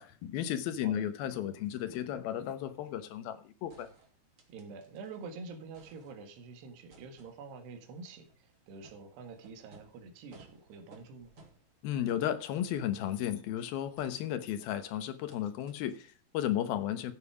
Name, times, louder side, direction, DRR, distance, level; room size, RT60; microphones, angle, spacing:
voice 1, 0.0-3.9 11.8-17.1, left 11 dB, 70° left, 2.7 m, -34 dB
sound 1, 3.7-5.2 5.5-6.5 6.9-13.4 14.0-14.8 15.3-15.4 15.7-15.8, right 3 dB, 35° right, 3.1 m, -61 dB
voice 2, 4.5-11.3, right 4 dB, 75° right, 3.9 m, -47 dB
14.0 x 9.1 x 4.9 m
omnidirectional pair, 4.8 m